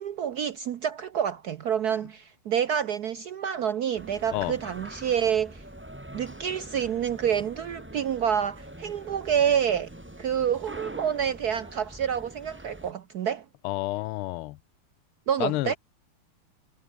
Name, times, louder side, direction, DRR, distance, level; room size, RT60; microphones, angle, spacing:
voice 1, 0.0-5.6 6.1-9.9 10.2-13.4 15.3-15.8, right 8 dB, 65° right, 0.9 m, -28 dB
sound 1, 4.0-12.9, right 1 dB, 5° right, 2.0 m, -44 dB
voice 2, 13.6-14.6 15.4-15.7, left 19 dB, 80° left, 1.5 m, -29 dB
omnidirectional pair, 2.4 m